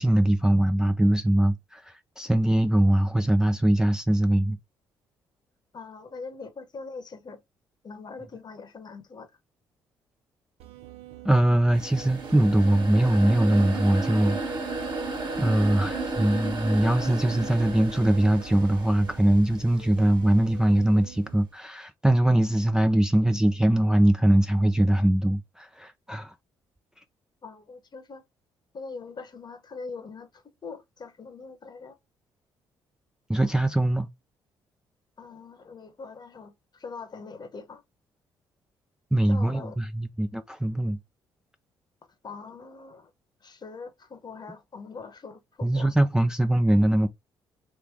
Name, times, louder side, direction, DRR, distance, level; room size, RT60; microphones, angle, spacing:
voice 1, 0.0-4.6 11.2-14.5 15.4-26.3 33.3-34.1 39.1-41.0 45.6-47.1, right 1 dB, 5° right, 0.4 m, -22 dB
voice 2, 5.7-7.4 7.8-9.3 27.4-28.2 28.7-32.0 35.2-37.8 39.2-39.8 42.2-43.1 43.4-45.9, left 4 dB, 40° left, 1.0 m, -42 dB
sound 1, 10.6-21.4, right 12 dB, 75° right, 0.5 m, -47 dB
sound 2, 11.7-19.7, right 3 dB, 40° right, 1.4 m, -33 dB
3.2 x 2.8 x 3.4 m
hypercardioid pair, 50°, 11 cm